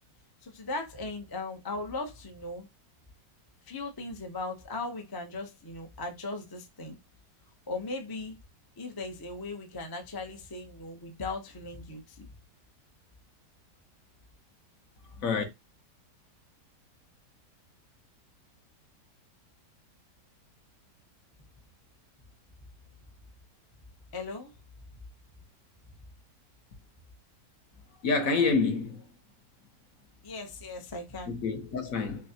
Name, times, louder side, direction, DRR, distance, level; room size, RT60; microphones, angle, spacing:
voice 1, 0.4-2.7 3.7-6.9 7.7-8.3 8.8-12.3 24.1-24.5 30.2-31.4, left 3 dB, 35° left, 0.3 m, -38 dB
voice 2, 28.0-29.1 31.3-32.3, left 4 dB, 60° left, 1.1 m, -28 dB
6.1 x 2.1 x 2.8 m
omnidirectional pair, 1.9 m